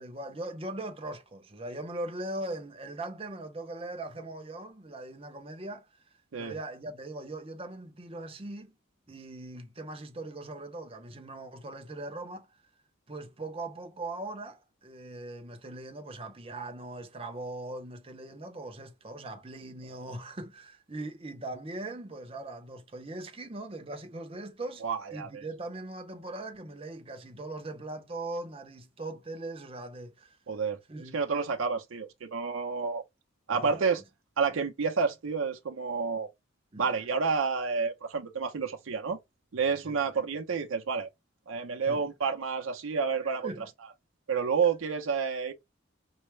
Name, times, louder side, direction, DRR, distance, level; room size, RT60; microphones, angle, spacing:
voice 1, 0.0-5.9 6.4-8.7 9.1-12.5 13.1-24.8 25.1-30.4 30.9-31.2 33.5-33.9 36.7-36.9 39.8-40.0 41.8-42.0 43.2-43.7, right 2 dB, 30° right, 0.6 m, -40 dB
voice 2, 24.8-25.4 30.5-30.8 31.1-33.0 33.5-34.0 34.4-36.3 36.8-39.2 39.5-41.1 41.5-43.5 44.3-45.5, right 5 dB, 80° right, 0.6 m, -29 dB
4.5 x 2.1 x 3.1 m
head